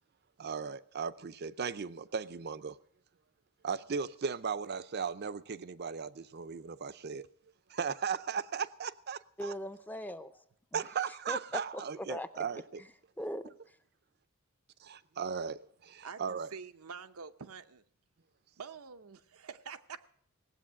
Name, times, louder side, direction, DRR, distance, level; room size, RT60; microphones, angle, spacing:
voice 1, 0.4-2.8 3.6-7.3 7.7-9.5 10.7-12.8 14.8-16.5, right 6 dB, 50° right, 0.5 m, -37 dB
voice 2, 9.4-10.3 10.7-10.8 11.3-12.3 13.2-13.5, equal, 10° left, 0.5 m, -39 dB
voice 3, 16.0-17.8 18.6-20.1, right 6 dB, 90° right, 0.8 m, -47 dB
18.0 x 8.1 x 7.5 m
head